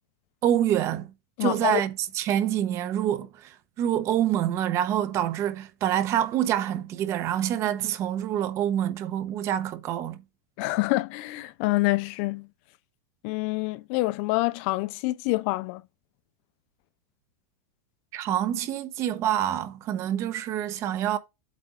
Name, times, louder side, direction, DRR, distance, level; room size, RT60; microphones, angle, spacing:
voice 1, 0.4-1.1 1.4-10.2 18.1-21.2, right 11 dB, 30° right, 0.9 m, -26 dB
voice 2, 1.4-1.8 10.6-12.5 13.2-15.8, left 21 dB, 45° left, 0.4 m, -26 dB
8.3 x 3.4 x 4.8 m
supercardioid pair, 160°, 9 cm